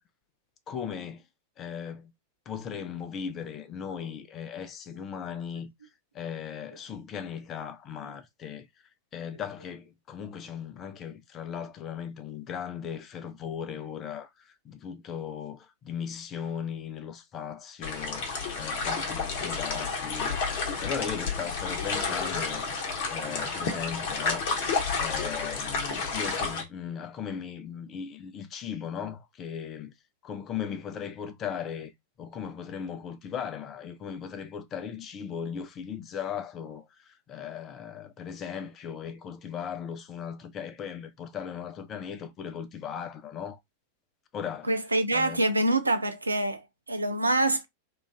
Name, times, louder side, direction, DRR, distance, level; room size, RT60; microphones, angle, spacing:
voice 1, 0.7-1.2 1.6-2.1 2.5-5.7 6.1-8.7 9.1-20.4 20.8-22.6 23.1-24.5 25.0-29.9 30.2-31.9 32.2-43.6 44.3-44.7 45.1-45.4, left 8 dB, 30° left, 0.6 m, -37 dB
sound 1, 17.8-26.6, left 4 dB, 50° left, 0.9 m, -31 dB
voice 2, 44.6-47.6, right 1 dB, 80° right, 0.5 m, -26 dB
3.0 x 2.5 x 3.4 m
figure-of-eight pair, 90°, 0 cm